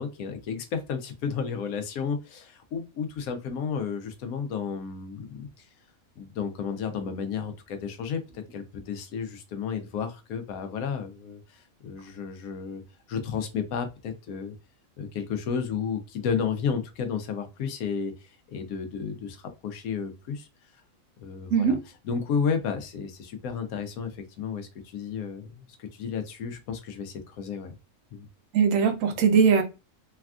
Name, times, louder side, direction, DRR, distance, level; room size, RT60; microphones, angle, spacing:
voice 1, 0.0-5.6 6.2-12.8 13.1-14.5 15.0-18.1 18.5-20.5 21.2-21.8 22.0-27.7 28.1-28.3, left 6 dB, 80° left, 1.1 m, -32 dB
voice 2, 28.5-29.6, right 6 dB, 70° right, 0.9 m, -20 dB
3.3 x 2.3 x 2.3 m
omnidirectional pair, 1.5 m